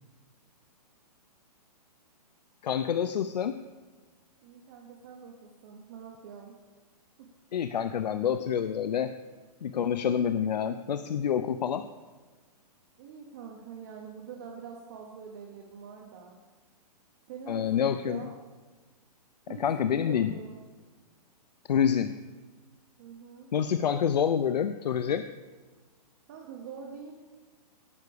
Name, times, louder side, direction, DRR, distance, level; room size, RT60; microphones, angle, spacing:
voice 1, 2.6-3.6 7.5-9.1 9.6-11.9 17.5-18.2 19.6-20.3 21.7-22.1 23.5-25.2, left 8 dB, 85° left, 11 dB, 0.6 m, -27 dB
voice 2, 4.4-6.5 7.2-7.3 13.0-16.4 17.3-17.7 18.0-18.3 19.5-20.6 23.0-23.5 23.8-24.0 26.3-27.1, right 6 dB, 25° right, 0 dB, 1.0 m, -45 dB
18.0 x 6.7 x 4.8 m, 1.3 s
hypercardioid pair, 175°, 21 cm